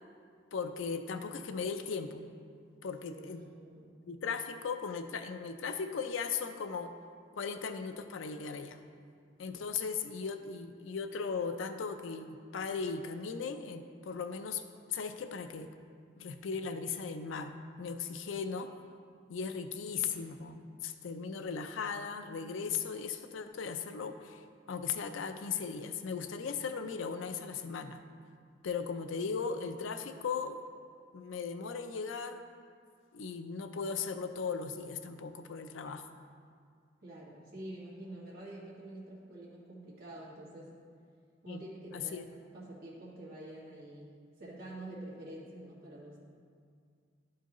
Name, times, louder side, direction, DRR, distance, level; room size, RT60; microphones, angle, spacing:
voice 1, 0.5-2.3 2.8-3.4 4.1-6.9 7.3-8.8 9.4-14.6 14.9-15.7 16.2-18.7 19.3-28.0 28.6-30.6 31.1-32.6 33.1-36.0 41.5-41.6 41.9-42.3, left 5 dB, 85° left, 8 dB, 0.4 m, -37 dB
voice 2, 3.0-3.9 37.0-40.7 41.4-41.7 41.9-42.1 42.5-46.2, right 1 dB, 50° right, -7 dB, 1.9 m, -47 dB
11.0 x 4.7 x 3.0 m, 2.2 s
head